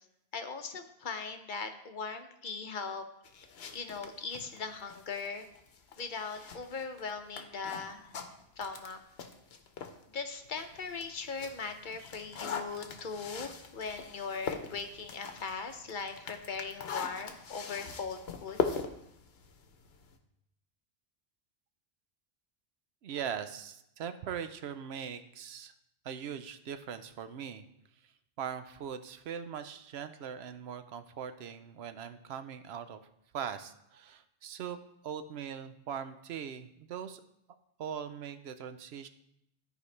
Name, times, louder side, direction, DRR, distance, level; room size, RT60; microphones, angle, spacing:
voice 1, 0.3-3.1 3.7-5.5 6.0-8.1 8.6-9.0 10.1-18.6, left 5 dB, 55° left, 7 dB, 0.7 m, -39 dB
sound 1, 3.2-10.0 10.5-20.2, left 6 dB, 70° left, 1.0 m, -41 dB
voice 2, 23.0-25.7 26.0-27.6 28.4-33.0 33.3-34.8 35.0-37.2 37.8-39.1, right 8 dB, 75° right, 10 dB, 0.8 m, -40 dB
13.0 x 5.0 x 3.2 m, 0.80 s
omnidirectional pair, 1.1 m